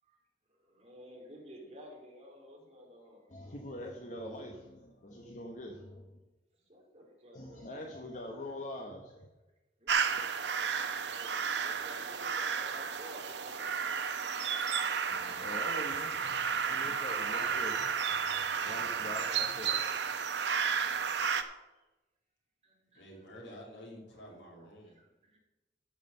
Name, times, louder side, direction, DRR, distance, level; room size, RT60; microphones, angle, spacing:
voice 1, 0.5-3.3 6.7-7.9 9.8-10.0 10.3-14.9 21.7-21.9 22.6-23.0 24.9-25.4, equal, 35° right, -1 dB, 2.7 m, -55 dB
voice 2, 3.3-6.1 7.3-9.3 15.1-19.9, left 1 dB, 45° left, 1 dB, 1.0 m, -44 dB
sound 1, 9.9-21.4, right 6 dB, 80° right, 0.8 m, -32 dB
voice 3, 22.9-25.0, equal, 85° left, -1 dB, 3.2 m, -50 dB
13.0 x 4.9 x 6.7 m, 1.1 s
head